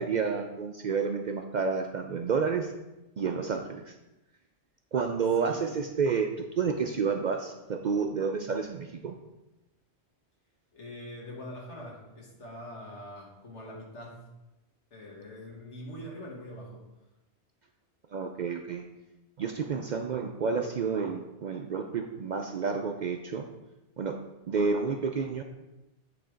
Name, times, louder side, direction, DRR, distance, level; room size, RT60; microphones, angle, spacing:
voice 1, 0.0-2.7 3.2-3.9 4.9-9.2 18.1-18.8 19.4-23.5 24.0-24.2 24.5-25.4, right 5 dB, 60° right, 4 dB, 0.5 m, -30 dB
voice 2, 5.4-5.8 10.7-14.2 14.9-16.8, equal, 80° left, -2 dB, 2.0 m, -43 dB
8.9 x 3.4 x 5.0 m, 0.99 s
omnidirectional pair, 1.2 m